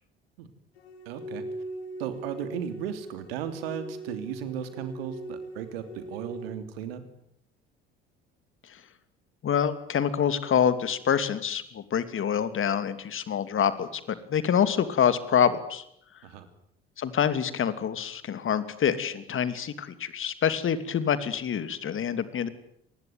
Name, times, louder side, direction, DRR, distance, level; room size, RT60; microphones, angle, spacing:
sound 1, 0.8-6.5, right 1 dB, 80° left, 3.7 m, -40 dB
voice 1, 1.0-1.4 2.0-7.0 16.2-16.5, right 9 dB, 75° right, 10 dB, 3.2 m, -35 dB
voice 2, 9.4-14.0 14.3-15.8 17.0-22.5, left 8 dB, 40° left, 13 dB, 2.8 m, -26 dB
26.5 x 20.5 x 9.4 m, 0.73 s
figure-of-eight pair, 60°, 31 cm